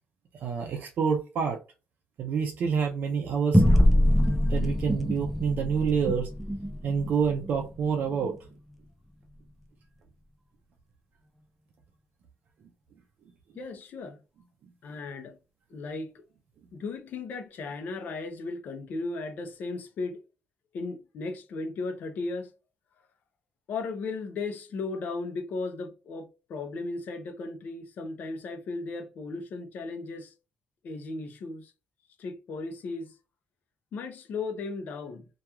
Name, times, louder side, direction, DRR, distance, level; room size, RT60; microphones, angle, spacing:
voice 1, 0.4-1.6 2.2-3.6 3.9-6.3 6.8-8.3, right 6 dB, 55° right, 0.5 m, -28 dB
sound 1, 3.5-8.4, equal, ahead, 0.4 m, -24 dB
voice 2, 13.6-14.2 14.8-15.4 15.7-16.1 16.7-20.2 20.7-22.5 23.7-30.3 30.8-31.7 32.2-33.1 33.9-35.3, left 3 dB, 55° left, 0.6 m, -36 dB
2.9 x 2.3 x 2.3 m
cardioid pair, 155°, 4 cm